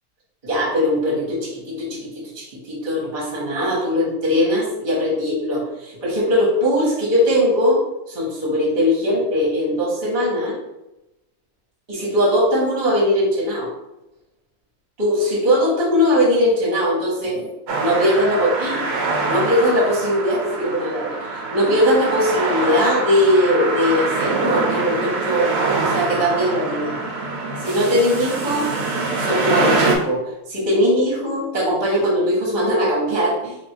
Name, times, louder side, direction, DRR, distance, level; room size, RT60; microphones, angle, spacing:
voice 1, 0.4-2.1 2.3-7.8 8.1-10.6 11.9-13.7 15.0-17.5 17.8-18.8 19.3-25.5 25.8-27.0 27.6-28.7 29.2-30.2 30.5-33.6, equal, 30° right, -5 dB, 1.2 m, -20 dB
sound 1, 17.7-30.0, right 3 dB, 80° right, 1.7 m, -24 dB
3.5 x 2.6 x 4.5 m, 0.94 s
omnidirectional pair, 2.4 m